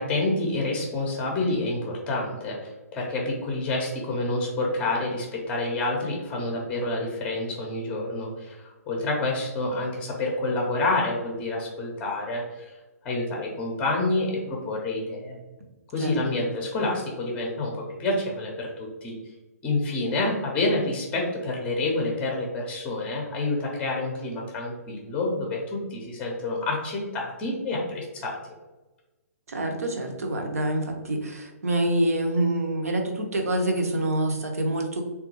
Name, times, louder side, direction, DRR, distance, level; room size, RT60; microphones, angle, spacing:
voice 1, 0.0-8.6 8.9-12.7 13.0-15.4 15.9-19.1 19.6-25.6 25.9-28.4, left 2 dB, 15° left, -1 dB, 0.6 m, -28 dB
voice 2, 29.5-35.0, right 1 dB, 65° right, 4 dB, 0.7 m, -26 dB
3.5 x 2.3 x 2.9 m, 1.1 s
figure-of-eight pair, 130°, 9 cm